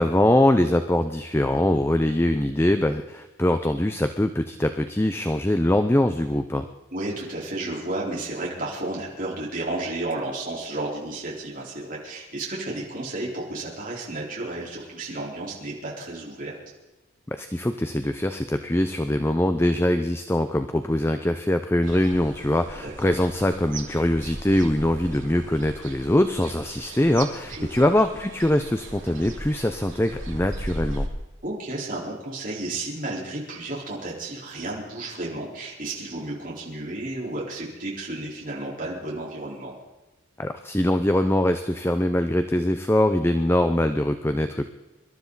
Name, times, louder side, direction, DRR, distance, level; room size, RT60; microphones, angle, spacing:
voice 1, 0.0-6.7 17.3-31.1 40.4-44.7, left 1 dB, 10° left, 8 dB, 0.5 m, -23 dB
voice 2, 6.9-16.5 22.8-23.1 27.5-27.9 31.4-39.7, right 2 dB, 40° right, -5 dB, 4.1 m, -32 dB
sound 1, 21.8-31.1, right 1 dB, 70° right, 2.6 m, -38 dB
25.5 x 12.5 x 4.0 m, 1.1 s
head